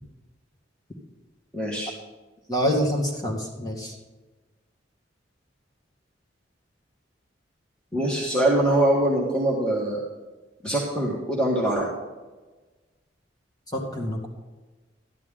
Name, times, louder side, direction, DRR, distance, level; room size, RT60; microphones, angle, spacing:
voice 1, 1.5-1.9 7.9-10.0 10.6-11.9, right 1 dB, 5° left, -5 dB, 1.7 m, -23 dB
voice 2, 2.5-3.9 13.7-14.3, equal, 20° left, -2 dB, 2.2 m, -26 dB
13.0 x 11.0 x 3.8 m, 1.2 s
head